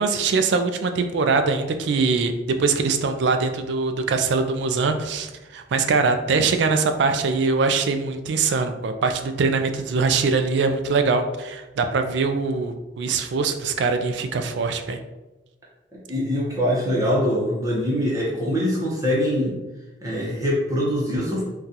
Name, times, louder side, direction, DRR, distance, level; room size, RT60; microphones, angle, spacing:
voice 1, 0.0-15.0, right 4 dB, 65° right, 7 dB, 0.3 m, -22 dB
voice 2, 15.9-19.6 20.0-21.4, equal, 20° right, -6 dB, 0.7 m, -23 dB
3.8 x 2.3 x 2.7 m, 1.1 s
head